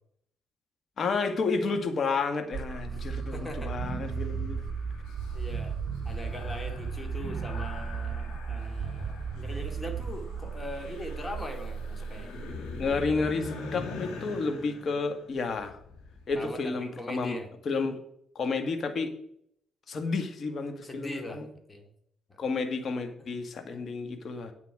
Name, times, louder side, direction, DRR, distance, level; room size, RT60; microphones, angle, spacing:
voice 1, 1.0-4.6 12.8-15.8 16.3-17.4 17.7-18.0 18.4-19.1 19.9-21.4 22.4-24.5, left 4 dB, 50° left, 7 dB, 1.6 m, -31 dB
sound 1, 2.5-13.4, right 6 dB, 45° right, 1.3 m, -35 dB
sound 2, 2.7-16.5, left 4 dB, 90° left, 2.4 m, -44 dB
voice 2, 2.8-3.7 5.3-5.8 6.0-12.3 16.3-17.5 20.8-21.9 22.3-22.5 23.2-23.3, left 1 dB, 20° left, 4 dB, 2.4 m, -41 dB
9.8 x 8.1 x 4.8 m, 0.70 s
cardioid pair, 90°, 0 cm